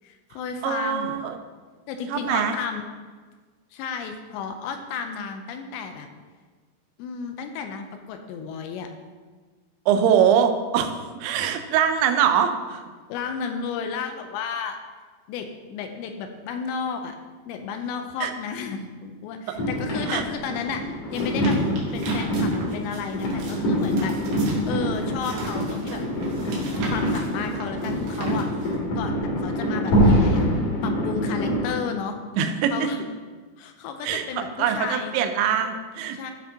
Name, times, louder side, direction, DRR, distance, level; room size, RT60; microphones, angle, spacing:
voice 1, 0.0-1.2 1.9-2.9 3.7-6.1 7.0-8.9 13.1-14.8 15.3-17.2 17.5-20.9 21.1-21.6 21.9-26.0 26.9-28.5 28.9-30.5 30.8-32.2 32.7-33.1 33.6-35.2 36.1-36.3, left 6 dB, 85° left, 6 dB, 2.8 m, -32 dB
voice 2, 0.6-1.4 2.1-2.6 9.9-12.8 18.2-18.3 20.1-20.2 32.4-32.9 34.0-34.3 34.6-36.3, right 8 dB, 90° right, 7 dB, 3.0 m, -23 dB
sound 1, 19.6-31.7, equal, 50° left, 3.2 m, -25 dB
sound 2, 21.1-28.8, right 3 dB, 70° right, 3.2 m, -40 dB
14.5 x 5.1 x 2.8 m, 1.4 s
omnidirectional pair, 5.1 m